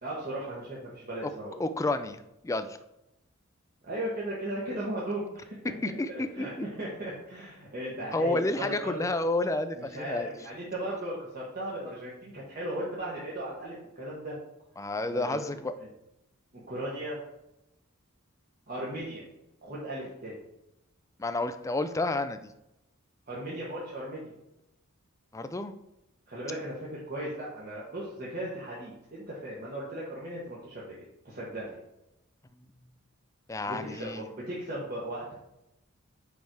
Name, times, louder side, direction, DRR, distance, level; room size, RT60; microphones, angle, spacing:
voice 1, 0.0-1.5 3.8-5.6 6.3-6.5 6.8-9.0 9.8-14.3 15.1-15.5 16.5-17.2 18.7-19.2 19.6-20.4 23.3-24.3 26.3-30.9 31.2-31.8 33.7-35.3, right 1 dB, 45° right, -6 dB, 1.4 m, -37 dB
voice 2, 1.6-2.8 5.8-6.7 8.1-10.3 14.8-15.7 21.2-22.5 25.3-25.7 33.5-34.3, left 2 dB, 15° left, 10 dB, 0.3 m, -30 dB
5.3 x 5.1 x 4.6 m, 0.89 s
head